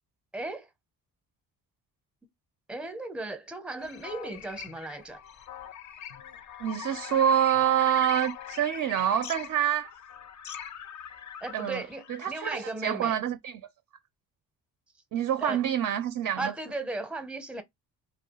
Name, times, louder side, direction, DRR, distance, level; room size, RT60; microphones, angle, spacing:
voice 1, 0.3-0.7 2.7-5.2 11.4-13.2 15.4-15.6 16.4-17.6, right 2 dB, ahead, 0.6 m, -36 dB
sound 1, 3.8-12.5, left 9 dB, 45° left, 0.5 m, -42 dB
voice 2, 6.6-9.9 11.5-11.8 12.1-13.6 15.1-16.5, right 10 dB, 45° right, 0.4 m, -26 dB
2.3 x 2.0 x 2.9 m
supercardioid pair, 65°, 42 cm